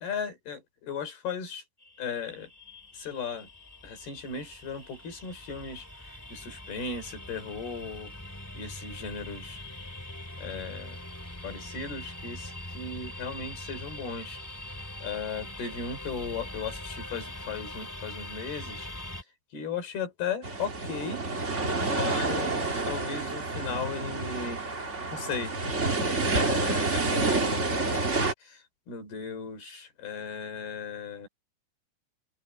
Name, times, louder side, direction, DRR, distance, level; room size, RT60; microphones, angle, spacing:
voice 1, 0.0-1.6 2.0-2.5 2.9-3.5 3.8-8.1 8.5-9.6 10.4-11.0 11.4-14.4 15.0-18.9 19.5-21.2 21.8-24.6 25.1-25.5 26.3-27.7 28.4-31.3, left 5 dB, 75° left, 6.7 m, -36 dB
sound 1, 1.8-19.2, left 1 dB, 5° left, 1.7 m, -42 dB
sound 2, 20.4-28.3, right 3 dB, 25° right, 1.8 m, -28 dB
open air
omnidirectional pair, 4.6 m